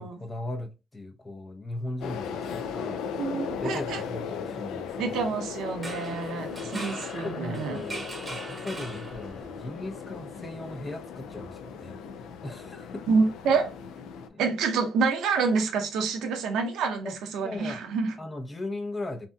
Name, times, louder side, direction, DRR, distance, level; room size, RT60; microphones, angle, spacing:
voice 1, 0.0-3.0 3.6-5.2 6.6-12.0 12.4-13.2 14.2-14.4 17.0-17.2 17.4-17.8 18.2-19.3, left 2 dB, 25° left, 0.6 m, -38 dB
sound 1, 2.0-14.3, left 6 dB, 85° left, 0.3 m, -37 dB
voice 2, 3.2-4.0 5.0-7.8 13.1-13.7 14.4-18.1, right 4 dB, 85° right, 0.5 m, -27 dB
sound 2, 5.7-9.6, right 2 dB, 25° right, 0.9 m, -41 dB
2.7 x 2.5 x 2.2 m
cardioid pair, 90°, 0 cm